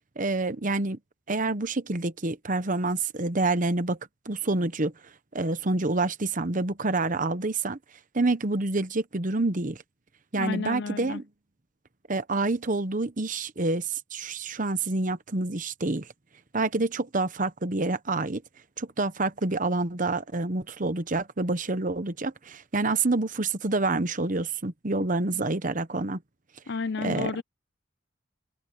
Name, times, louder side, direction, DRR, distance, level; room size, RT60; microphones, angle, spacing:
voice 1, 0.2-1.0 1.3-4.0 4.3-4.9 5.3-7.8 8.1-9.8 10.3-11.2 12.1-16.1 16.5-18.4 18.8-26.2 27.0-27.3, right 2 dB, 40° right, 1.0 m, -27 dB
voice 2, 10.4-11.2 26.7-27.4, left 4 dB, 55° left, 0.6 m, -31 dB
head